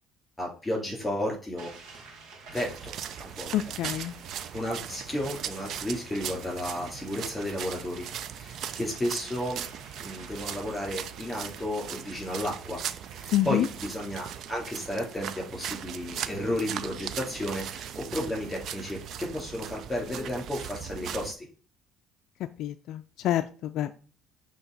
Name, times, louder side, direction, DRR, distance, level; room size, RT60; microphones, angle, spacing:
voice 1, 0.4-1.8 2.5-3.5 4.5-9.7 10.0-12.8 13.2-21.5, left 1 dB, 10° left, -1 dB, 3.3 m, -33 dB
sound 1, 1.6-17.5, right 4 dB, 85° right, 1.3 m, -52 dB
sound 2, 2.5-21.3, right 9 dB, 60° right, 0.4 m, -39 dB
voice 2, 3.5-4.2 13.3-13.7 22.6-24.0, left 13 dB, 65° left, 9 dB, 0.3 m, -28 dB
7.9 x 2.9 x 4.1 m, 0.39 s
cardioid pair, 110°, 0 cm